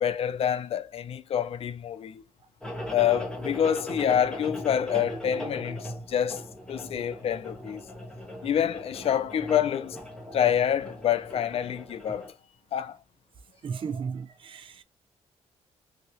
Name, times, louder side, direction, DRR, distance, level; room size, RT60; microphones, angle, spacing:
voice 1, 0.0-2.2 2.9-6.4 6.7-7.8 8.4-10.0 10.3-12.3 12.7-13.0, left 9 dB, 55° left, 0.4 m, -27 dB
sound 1, 2.6-12.3, equal, 5° left, 1.2 m, -39 dB
voice 2, 13.6-14.8, right 6 dB, 50° right, 0.6 m, -34 dB
2.9 x 2.9 x 2.9 m
cardioid pair, 100°, 12 cm